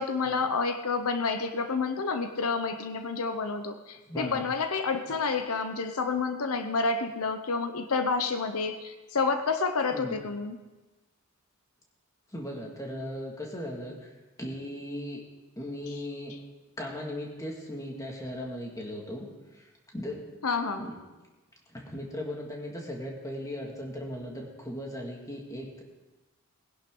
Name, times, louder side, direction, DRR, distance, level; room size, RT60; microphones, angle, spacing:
voice 1, 0.0-10.6 15.9-16.0 20.4-20.9, left 4 dB, 75° left, 8 dB, 0.8 m, -29 dB
voice 2, 4.1-4.5 9.9-10.2 12.3-14.1 14.4-15.2 15.6-16.4 16.8-19.3 19.5-19.7 19.9-20.2 20.8-20.9 21.7-25.8, left 1 dB, 15° left, -1 dB, 2.0 m, -37 dB
20.0 x 11.0 x 3.8 m, 1.2 s
head